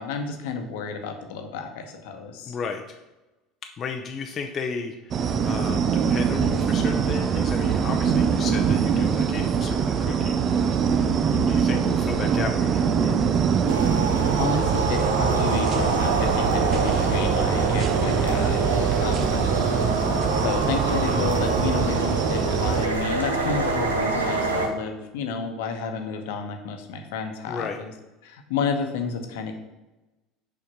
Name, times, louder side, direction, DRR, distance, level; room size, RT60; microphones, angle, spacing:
voice 1, 0.0-2.6 11.3-11.6 14.3-19.7 20.3-27.9 28.2-29.6, left 5 dB, 60° left, 5 dB, 1.1 m, -31 dB
voice 2, 2.5-3.0 3.8-5.2 5.4-10.8 11.2-13.4 18.7-19.1 27.5-27.8, left 5 dB, 35° left, 3 dB, 0.7 m, -34 dB
sound 1, 5.1-22.9, right 7 dB, 40° right, 0.6 m, -23 dB
sound 2, 13.7-24.7, right 3 dB, 80° right, 1.0 m, -26 dB
7.0 x 5.0 x 5.9 m, 1.0 s
figure-of-eight pair, 70°, 0 cm